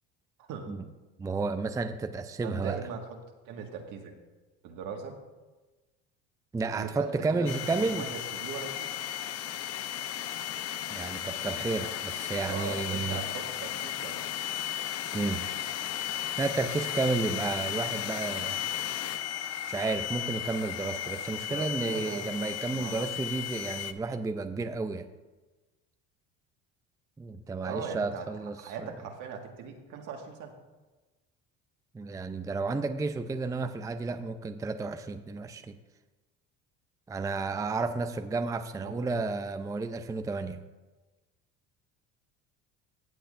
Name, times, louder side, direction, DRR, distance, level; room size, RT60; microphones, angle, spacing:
voice 1, 1.2-2.8 6.5-8.1 10.9-13.2 15.1-15.4 16.4-18.6 19.7-25.0 27.2-28.9 31.9-35.8 37.1-40.6, right 3 dB, 10° right, 8 dB, 0.5 m, -32 dB
voice 2, 2.4-3.0 3.5-4.2 4.6-5.2 6.8-8.9 12.5-14.2 18.4-18.9 21.4-22.3 22.7-23.0 27.6-28.3 28.6-30.5 38.7-39.2, right 6 dB, 65° right, 2 dB, 1.7 m, -40 dB
sound 1, 7.5-23.9, left 10 dB, 50° left, 0.7 m, -35 dB
16.0 x 7.9 x 2.5 m, 1.2 s
supercardioid pair, 95°, 33 cm